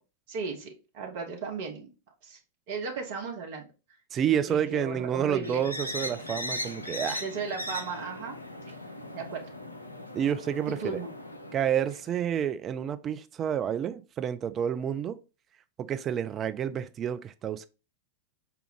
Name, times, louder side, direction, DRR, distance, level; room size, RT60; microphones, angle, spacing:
voice 1, 0.3-1.9 2.2-2.4 2.7-3.7 4.5-5.7 7.2-8.4 9.1-9.5 10.7-11.1, right 5 dB, 50° right, 0.9 m, -35 dB
voice 2, 4.1-7.2 10.1-11.0 11.5-15.2 15.8-17.7, right 9 dB, 25° right, 0.3 m, -29 dB
sound 1, 5.4-12.2, left 1 dB, 85° left, 0.4 m, -38 dB
4.8 x 2.3 x 3.5 m
figure-of-eight pair, 90°, 0 cm